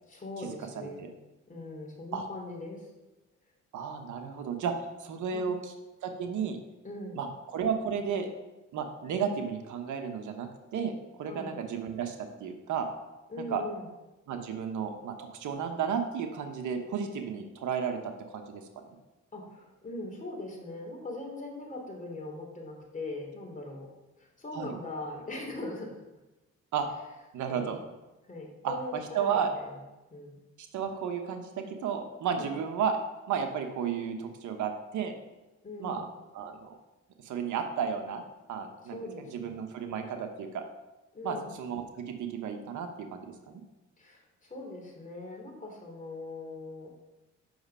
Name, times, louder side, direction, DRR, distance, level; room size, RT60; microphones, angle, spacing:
voice 1, 0.1-1.1 1.5-2.9 5.3-5.5 6.8-7.2 11.3-11.6 13.3-13.9 19.3-23.9 24.2-26.0 27.5-27.8 28.3-29.8 30.1-30.4 32.4-32.6 35.6-36.1 38.9-39.5 41.1-41.6 44.0-46.9, left 2 dB, 25° left, 0 dB, 3.0 m, -41 dB
voice 2, 0.8-1.1 2.1-2.3 3.7-4.7 5.0-5.7 6.0-6.6 7.2-8.3 8.7-12.9 13.5-13.6 14.3-18.6 24.5-24.7 26.7-26.9 27.3-27.8 28.6-28.7 29.1-29.5 30.6-33.0 33.3-35.1 35.8-36.0 36.3-36.8 37.2-38.2 38.5-39.0 39.3-40.6 41.2-43.6, right 7 dB, 75° right, 5 dB, 1.2 m, -33 dB
7.8 x 6.3 x 5.6 m, 1.0 s
cardioid pair, 90°, 30 cm